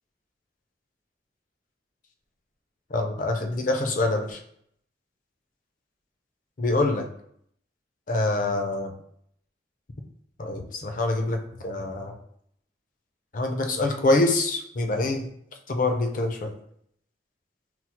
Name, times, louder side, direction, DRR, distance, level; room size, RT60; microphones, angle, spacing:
voice 1, 2.9-4.4 6.6-7.0 8.1-8.9 10.4-12.2 13.3-15.3 15.7-16.5, left 2 dB, 50° left, 4 dB, 0.5 m, -25 dB
6.0 x 2.0 x 2.9 m, 0.69 s
head